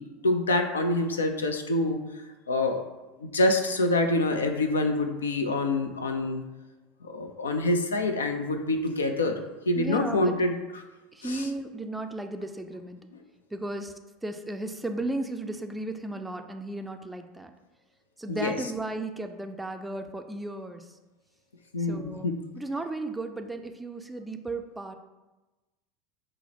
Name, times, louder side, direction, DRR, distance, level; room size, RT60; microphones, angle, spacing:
voice 1, 0.0-2.8 3.2-6.4 7.0-9.4 9.7-10.8 11.2-11.4 18.3-18.6 21.7-22.5, left 2 dB, 85° left, 6 dB, 0.3 m, -26 dB
voice 2, 9.8-10.4 11.1-13.0 13.5-13.9 14.2-17.5 18.2-21.0 21.9-22.3 22.5-24.9, right 2 dB, 10° right, 6 dB, 0.3 m, -35 dB
5.6 x 2.0 x 2.8 m, 1.1 s
hypercardioid pair, 75°, 0 cm